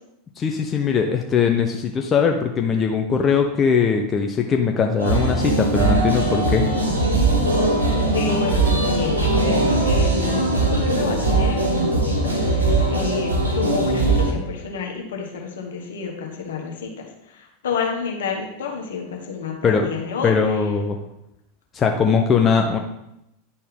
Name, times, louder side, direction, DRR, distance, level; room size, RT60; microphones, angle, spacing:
voice 1, 0.4-6.7 19.6-19.9 20.2-21.0 21.7-22.8, left 6 dB, 30° left, 3 dB, 0.7 m, -20 dB
sound 1, 5.0-14.3, right 2 dB, 90° right, 1.3 m, -20 dB
voice 2, 8.1-20.3, left 5 dB, 70° left, 1 dB, 1.5 m, -30 dB
10.0 x 4.3 x 3.7 m, 0.82 s
hypercardioid pair, 90°, 0 cm